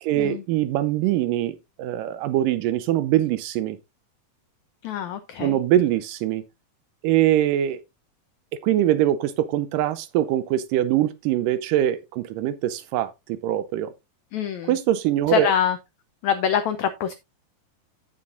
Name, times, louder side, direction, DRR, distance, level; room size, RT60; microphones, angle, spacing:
voice 1, 0.0-3.8 5.4-6.4 7.0-7.8 8.6-13.9 14.7-15.5, right 12 dB, 80° right, 2.0 m, -23 dB
voice 2, 4.8-5.6 14.3-14.7 15.3-15.8 16.2-17.1, left 9 dB, 90° left, 1.6 m, -24 dB
16.0 x 5.8 x 2.5 m
omnidirectional pair, 4.2 m